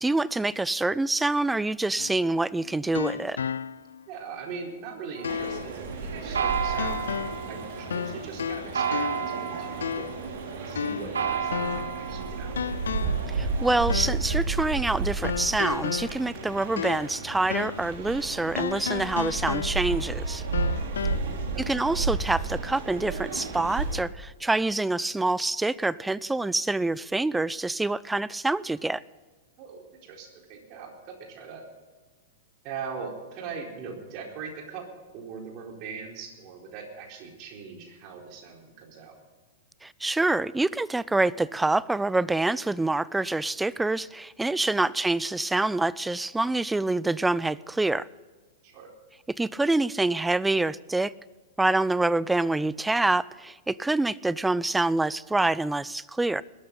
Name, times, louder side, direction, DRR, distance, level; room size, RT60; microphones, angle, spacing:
voice 1, 0.0-3.4 13.3-20.4 21.7-29.0 39.8-48.1 49.4-51.1 51.6-56.4, right 2 dB, 5° right, 0.4 m, -26 dB
sound 1, 2.0-4.0 4.5-4.6 5.2-5.8 6.8-7.5 7.9-9.4 9.8-10.3 10.7-12.0 12.6-13.3 13.9-14.3 15.2-17.2 17.5-17.9 18.6-20.1 20.5-21.2, left 7 dB, 75° left, 0.3 m, -33 dB
voice 2, 4.1-7.1 7.5-10.1 10.6-12.8 20.9-21.7 29.6-31.6 32.6-34.9 35.1-39.2 48.6-48.9, right 5 dB, 45° right, 4.3 m, -41 dB
sound 2, 5.2-15.3, right 7 dB, 75° right, 1.6 m, -34 dB
sound 3, 5.3-24.0, right 4 dB, 60° right, 3.5 m, -33 dB
21.0 x 12.5 x 4.0 m
figure-of-eight pair, 105°, 0 cm